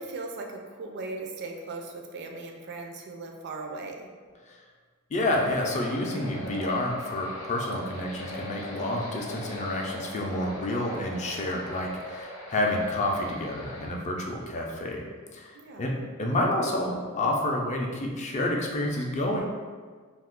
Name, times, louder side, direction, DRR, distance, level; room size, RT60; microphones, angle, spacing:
voice 1, 0.0-4.1 15.5-16.0, right 3 dB, 50° right, 2 dB, 0.4 m, -38 dB
voice 2, 5.1-15.0 15.3-15.9 16.2-19.6, left 1 dB, 35° left, 0 dB, 0.4 m, -29 dB
sound 1, 5.2-13.9, left 1 dB, 90° left, 0.7 m, -40 dB
2.6 x 2.4 x 3.5 m, 1.5 s
head